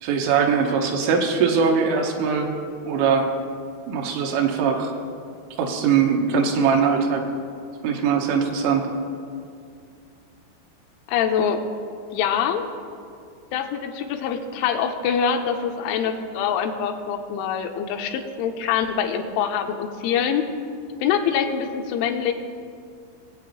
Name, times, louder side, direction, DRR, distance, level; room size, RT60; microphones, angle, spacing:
voice 1, 0.0-2.5 2.8-3.3 3.9-4.9 5.6-7.2 7.8-8.9, right 6 dB, 90° right, 2 dB, 3.5 m, -21 dB
voice 2, 11.1-11.6 12.1-12.7 13.5-20.4 21.0-22.3, left 7 dB, 85° left, 5 dB, 3.1 m, -24 dB
22.0 x 8.2 x 2.9 m, 2.3 s
omnidirectional pair, 5.5 m